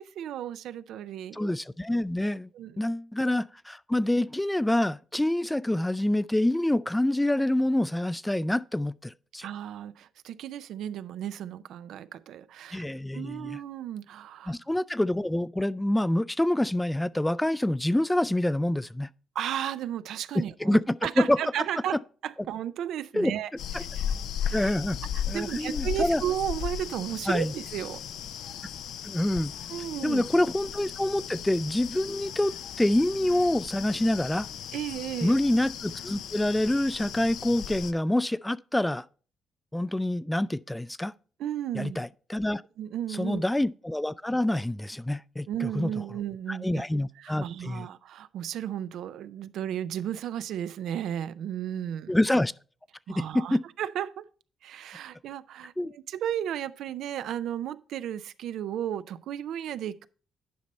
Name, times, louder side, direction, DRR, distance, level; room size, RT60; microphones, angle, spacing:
voice 1, 0.0-1.5 2.5-2.8 9.4-12.9 13.1-14.5 19.4-22.0 22.2-23.5 24.0-24.2 24.4-24.7 25.1-28.0 29.7-30.2 34.7-35.3 41.4-42.0 42.8-43.4 45.5-46.8 47.2-52.2 53.1-54.3 54.6-60.1, right 10 dB, 80° right, 0.4 m, -34 dB
voice 2, 1.3-2.5 2.8-9.5 12.7-13.6 14.5-19.1 20.6-21.4 23.1-23.3 23.7-23.8 24.5-25.0 25.3-26.2 27.3-27.5 29.0-29.5 30.0-34.5 35.2-39.1 39.7-41.1 41.7-42.6 43.1-45.9 46.5-47.9 52.1-52.5 53.1-53.6 55.8-55.9, left 1 dB, 10° left, 0.3 m, -26 dB
sound 1, 23.6-37.9, left 9 dB, 80° left, 0.5 m, -36 dB
10.5 x 5.3 x 4.1 m
cardioid pair, 90°, 0 cm